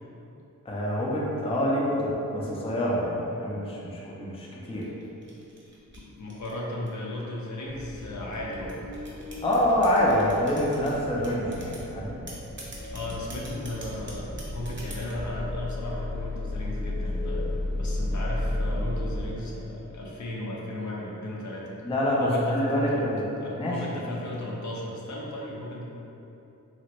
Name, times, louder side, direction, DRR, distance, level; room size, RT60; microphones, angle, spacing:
voice 1, 0.7-4.9 9.4-12.1 21.8-24.1, equal, 20° left, -5 dB, 0.4 m, -26 dB
sound 1, 4.6-7.1 7.8-10.9 11.2-11.9 12.3-15.2, right 2 dB, 35° right, 0.7 m, -46 dB
voice 2, 5.9-8.8 12.9-17.5 17.8-21.8 22.2-23.0 23.4-25.8, left 1 dB, 60° left, -4 dB, 0.6 m, -35 dB
sound 2, 7.6-19.3, left 1 dB, 80° left, 1.1 m, -34 dB
2.9 x 2.5 x 2.9 m, 2.9 s
wide cardioid pair, 85°, 32 cm